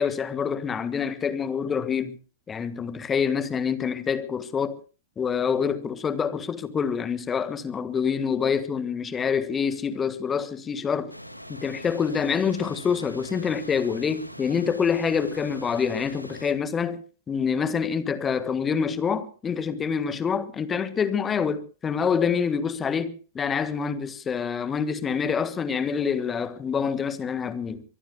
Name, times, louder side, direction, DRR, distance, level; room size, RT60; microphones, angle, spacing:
voice 1, 0.0-2.2 2.5-4.8 5.2-11.1 11.5-17.0 17.3-27.8, left 6 dB, 15° left, 1.5 m, -26 dB
sound 1, 11.1-16.5, equal, 90° left, 1.8 m, -42 dB
23.5 x 23.0 x 2.2 m
figure-of-eight pair, 100°, 0 cm